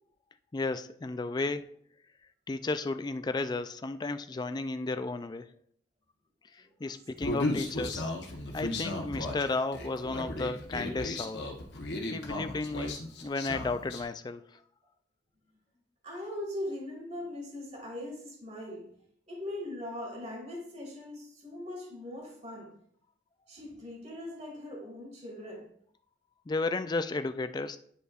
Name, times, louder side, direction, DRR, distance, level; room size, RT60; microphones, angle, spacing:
voice 1, 0.5-1.6 2.5-5.5 6.5-8.1 8.5-11.5 12.1-14.4 26.5-27.8, left 3 dB, 25° left, 10 dB, 0.3 m, -33 dB
Human voice, 7.2-14.0, left 1 dB, 75° left, 1.1 m, -35 dB
voice 2, 16.0-18.9 19.3-22.7 23.5-25.7, left 1 dB, 40° right, -2 dB, 2.1 m, -40 dB
10.0 x 5.3 x 2.4 m, 0.64 s
head